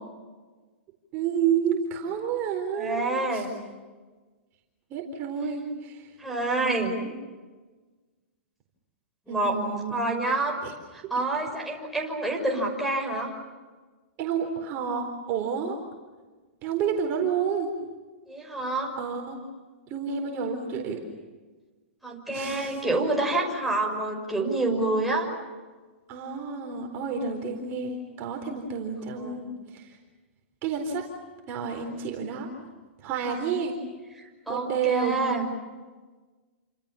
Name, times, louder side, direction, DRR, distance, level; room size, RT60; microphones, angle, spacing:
voice 1, 1.1-3.5 4.9-6.1 6.6-7.1 9.3-9.9 10.6-10.7 14.2-15.8 16.6-17.7 18.9-19.4 19.9-21.0 22.3-22.8 26.1-30.0 30.6-31.1 31.5-32.5 33.0-33.8 34.5-35.2, right 6 dB, 35° right, 2 dB, 4.1 m, -30 dB
voice 2, 2.8-3.5 6.2-6.9 9.3-9.6 9.9-10.6 10.9-13.3 18.3-18.9 22.0-25.3 29.1-29.6 34.2-35.5, right 2 dB, ahead, -2 dB, 6.1 m, -27 dB
29.5 x 26.5 x 7.2 m, 1.3 s
hypercardioid pair, 140°, 7 cm